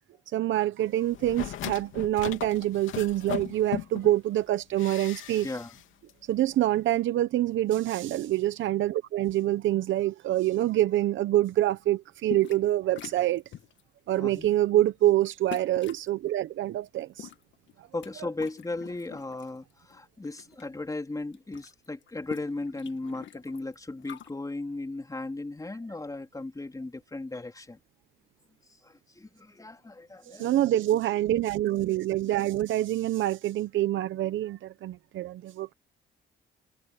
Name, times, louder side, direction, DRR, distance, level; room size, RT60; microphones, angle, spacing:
voice 1, 0.3-5.5 6.3-13.4 14.1-17.3 30.2-35.7, right 14 dB, 75° right, 0.8 m, -26 dB
sound 1, 1.1-4.1 4.8-5.8 6.1-6.2, left 12 dB, 85° left, 2.9 m, -37 dB
voice 2, 5.4-5.8 14.2-14.5 17.9-27.8 28.8-30.5, left 2 dB, 15° left, 3.6 m, -36 dB
sound 2, 12.3-12.7 13.0-13.8 14.3-14.6 15.5-16.1 17.0-18.1 18.4-19.5 19.9-20.6 20.9-21.0 21.2-24.3, left 10 dB, 70° left, 1.8 m, -44 dB
cardioid pair, 90°, 20 cm